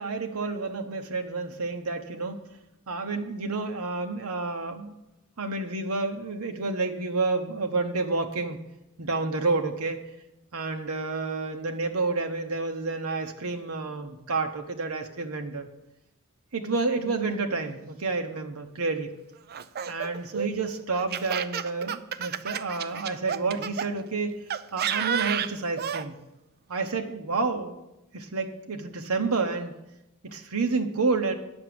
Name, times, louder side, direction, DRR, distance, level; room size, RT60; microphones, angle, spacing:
voice 1, 0.0-2.4 2.9-4.9 5.4-8.6 9.0-10.0 10.5-15.7 16.5-19.1 19.9-24.3 24.7-26.2 26.7-27.7 28.1-29.8 30.2-31.3, right 3 dB, 90° right, 5 dB, 0.9 m, -29 dB
Laughter, 19.5-23.9 24.5-26.1, right 8 dB, 45° right, 0.4 m, -31 dB
9.8 x 6.0 x 7.7 m, 0.91 s
head